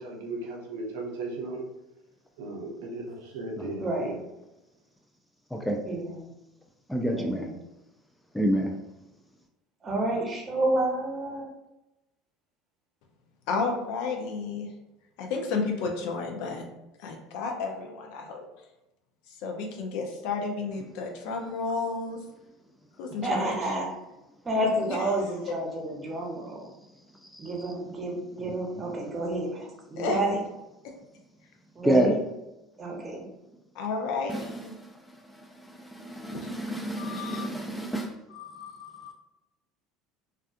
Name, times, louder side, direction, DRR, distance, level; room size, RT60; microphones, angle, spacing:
voice 1, 0.0-1.6 2.4-4.2, right 2 dB, 70° right, 0 dB, 0.5 m, -36 dB
voice 2, 3.8-4.1 5.8-6.3 7.1-7.6 9.8-11.4 23.2-23.9 24.4-26.7 27.4-30.4 31.7-32.2 32.8-33.3, right 1 dB, 25° right, -2 dB, 0.8 m, -29 dB
voice 3, 6.9-7.5 8.3-8.8 31.8-32.2 34.3-34.5 35.8-38.1, right 1 dB, 5° left, 1 dB, 0.3 m, -27 dB
voice 4, 13.5-14.7 15.2-16.7 17.0-18.4 19.4-22.2 23.0-23.5 24.6-25.4 30.0-30.2 33.8-34.7 36.3-36.5 37.0-37.5 38.3-39.1, left 4 dB, 65° left, 2 dB, 0.4 m, -32 dB
2.4 x 2.3 x 2.3 m, 0.93 s
hypercardioid pair, 70°, 0 cm